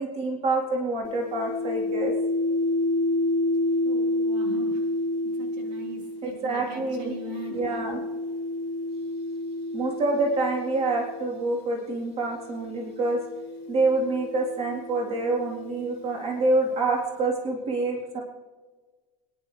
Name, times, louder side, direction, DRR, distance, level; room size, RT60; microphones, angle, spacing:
voice 1, 0.0-2.1 6.2-7.1 7.5-8.0 9.7-13.3 13.7-18.2, right 2 dB, 30° right, -1 dB, 3.8 m, -27 dB
sound 1, 1.0-11.4 12.3-16.1, left 1 dB, 35° left, 1.8 m, -30 dB
voice 2, 3.8-4.9 5.2-7.6, right 1 dB, 90° right, 1 dB, 4.1 m, -40 dB
27.5 x 10.5 x 3.4 m, 1.3 s
supercardioid pair, 140°, 21 cm